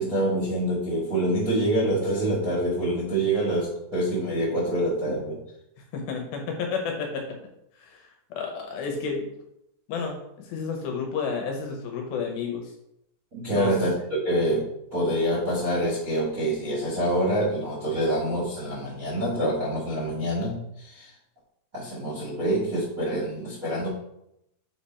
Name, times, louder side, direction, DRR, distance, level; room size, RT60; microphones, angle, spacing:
voice 1, 0.0-5.4 13.3-21.1 21.7-23.9, right 1 dB, 45° right, -6 dB, 1.1 m, -26 dB
voice 2, 5.9-7.3 7.7-9.2 9.9-12.7 13.5-13.7, left 5 dB, 75° left, 2 dB, 2.6 m, -31 dB
7.7 x 3.4 x 4.2 m, 0.80 s
omnidirectional pair, 4.7 m